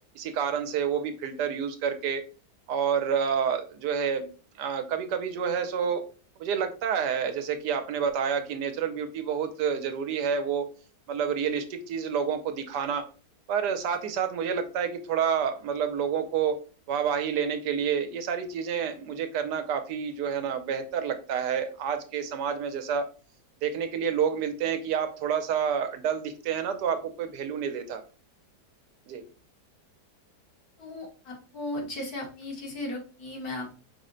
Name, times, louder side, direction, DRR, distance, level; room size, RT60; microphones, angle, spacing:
voice 1, 0.1-2.2 2.7-4.3 4.6-6.0 6.4-10.7 11.1-13.0 13.5-16.6 16.9-23.1 23.6-28.0 29.1-29.2, right 7 dB, 75° right, 7 dB, 1.2 m, -29 dB
voice 2, 30.8-33.8, left 1 dB, 65° left, 0 dB, 1.6 m, -36 dB
5.5 x 2.1 x 3.7 m, 0.37 s
omnidirectional pair, 1.8 m